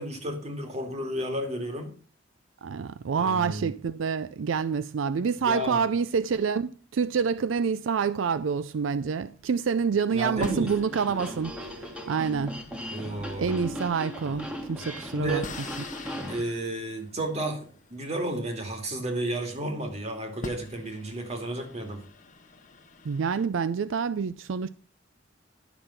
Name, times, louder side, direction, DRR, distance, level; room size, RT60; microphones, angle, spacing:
voice 1, 0.0-1.9 3.1-3.7 5.4-5.8 10.1-10.7 12.9-13.6 15.1-15.5 16.3-22.0, right 1 dB, 35° right, 2.5 m, -32 dB
voice 2, 2.6-12.6 13.4-15.4 23.0-24.7, right 6 dB, 80° right, 0.4 m, -27 dB
sound 1, 9.0-9.7 10.4-19.5 20.0-20.1 20.4-23.5, left 2 dB, 40° left, 1.1 m, -46 dB
barbarian looper, 10.3-16.4, equal, 5° right, 1.6 m, -38 dB
11.0 x 6.7 x 5.7 m
head